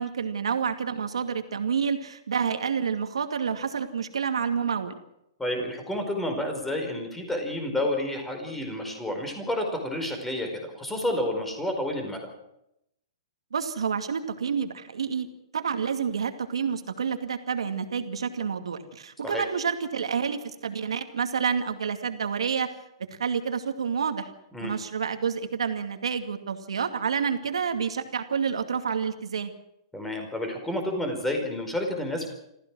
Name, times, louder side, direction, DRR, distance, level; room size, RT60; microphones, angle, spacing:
voice 1, 0.0-5.0 13.5-15.3 15.5-22.7 23.2-24.3 24.6-29.5, right 6 dB, 90° right, 7 dB, 2.4 m, -29 dB
voice 2, 5.4-12.3 19.2-19.5 24.5-24.7 29.9-32.3, left 1 dB, 5° left, 4 dB, 5.0 m, -30 dB
27.0 x 15.5 x 6.3 m, 0.80 s
hypercardioid pair, 145°, 3 cm